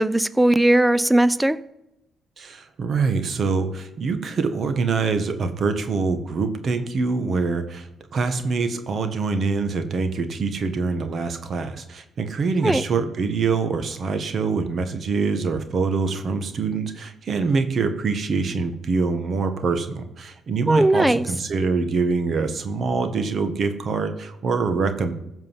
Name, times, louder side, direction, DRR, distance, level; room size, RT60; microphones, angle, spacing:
voice 1, 0.0-1.6 12.6-12.8 20.7-21.2, right 1 dB, 10° right, 0.6 m, -18 dB
voice 2, 2.4-25.1, right 4 dB, 50° right, 1.6 m, -24 dB
15.0 x 5.3 x 7.6 m
cardioid pair, 90°, 0 cm